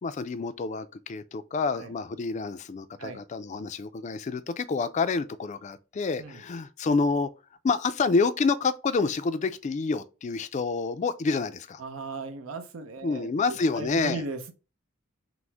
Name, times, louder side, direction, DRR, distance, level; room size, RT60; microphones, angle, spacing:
voice 1, 0.0-7.3 7.6-11.8 13.0-14.2, left 4 dB, 35° left, 0.3 m, -28 dB
voice 2, 11.8-14.5, right 3 dB, 90° right, 0.7 m, -37 dB
6.1 x 2.0 x 3.3 m
head